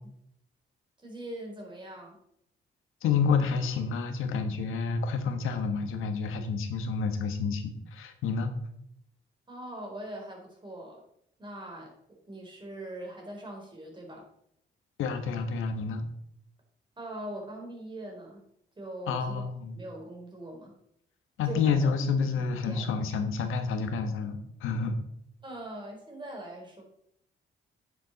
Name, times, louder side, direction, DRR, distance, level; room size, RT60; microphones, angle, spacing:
voice 1, 1.0-2.2 9.5-11.0 11.4-11.9 12.3-14.3 17.0-18.4 18.8-19.4 19.7-20.7 21.4-21.9 22.2-23.0 25.4-26.8, right 1 dB, 25° right, 0 dB, 4.2 m, -41 dB
voice 2, 3.0-8.5 15.0-16.1 19.1-19.7 21.4-25.0, left 5 dB, 85° left, 8 dB, 1.3 m, -29 dB
9.7 x 7.5 x 4.1 m, 0.72 s
cardioid pair, 80°, 20 cm